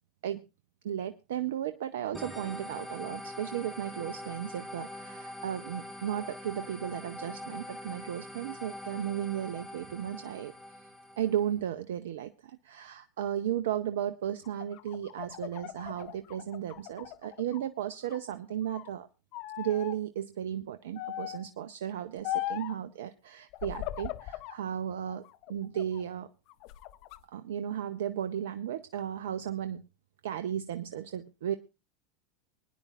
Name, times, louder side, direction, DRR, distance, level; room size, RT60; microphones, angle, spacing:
voice 1, 0.8-10.5 11.2-19.1 19.6-25.2 25.5-26.3 27.3-29.9 30.2-31.5, right 10 dB, 75° right, 11 dB, 0.6 m, -35 dB
sound 1, 2.1-11.5, left 1 dB, ahead, 1.7 m, -43 dB
sound 2, 14.4-17.7 18.0-18.9 19.3-20.0 21.0-21.5 22.2-22.8 23.5-24.6 25.1-26.0 26.5-27.2, left 14 dB, 60° left, 0.6 m, -39 dB
24.0 x 10.0 x 2.4 m, 0.28 s
hypercardioid pair, 90°, 0 cm